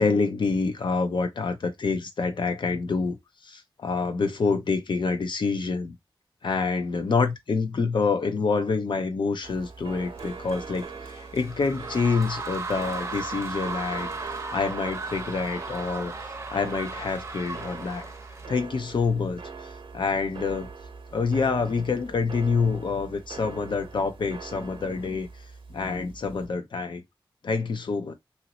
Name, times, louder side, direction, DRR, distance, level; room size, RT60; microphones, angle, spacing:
voice 1, 0.0-3.2 3.4-5.9 6.4-14.1 14.5-16.1 16.5-18.1 18.5-19.4 19.9-20.7 21.1-25.3 25.7-27.0 27.4-28.1, left 4 dB, 65° left, 0.7 m, -27 dB
sound 1, 9.4-26.5, right 4 dB, 80° right, 0.8 m, -43 dB
sound 2, 10.1-18.5, right 3 dB, 35° right, 0.6 m, -36 dB
2.9 x 2.8 x 2.8 m
wide cardioid pair, 130°, 9 cm